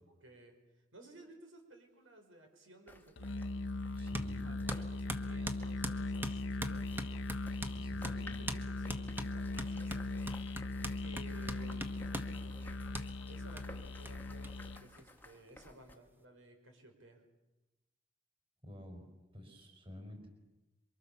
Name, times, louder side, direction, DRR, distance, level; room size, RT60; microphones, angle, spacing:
voice 1, 0.2-3.5 4.4-4.5 4.9-6.9 7.9-10.6 11.0-12.8 13.3-17.2, right 1 dB, 85° right, 4 dB, 5.1 m, -57 dB
sound 1, 2.9-16.0, left 1 dB, 10° left, 1.4 m, -55 dB
Musical instrument, 3.2-14.9, left 2 dB, 70° left, 0.9 m, -39 dB
voice 2, 3.9-4.5 7.5-8.4 18.6-20.3, left 1 dB, 30° right, 3 dB, 5.4 m, -51 dB
sound 2, 4.1-4.3 4.7-7.8 8.0-8.2 8.5-8.6 8.9-12.3 12.9-13.1 13.6-13.7 14.1-14.2 14.4-14.5 14.8-15.5, right 1 dB, 10° right, 1.4 m, -41 dB
28.0 x 24.0 x 7.1 m, 1.0 s
head